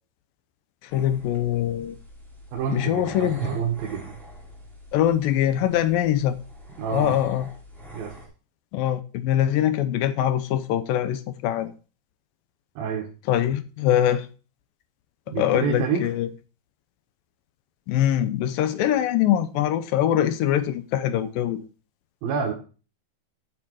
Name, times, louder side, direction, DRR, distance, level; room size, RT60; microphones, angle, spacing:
voice 1, 0.8-2.0 2.7-3.5 4.9-6.4 6.9-7.5 8.7-11.7 13.3-14.3 15.4-16.3 17.9-21.7, left 11 dB, 80° left, 2.1 m, -23 dB
sound 1, 0.9-8.3, right 3 dB, ahead, 2.5 m, -41 dB
voice 2, 2.5-4.1 6.8-7.2 7.9-8.1 12.8-13.1 15.3-16.1 22.2-22.5, right 6 dB, 65° right, 3.1 m, -28 dB
13.0 x 6.1 x 4.7 m
omnidirectional pair, 4.7 m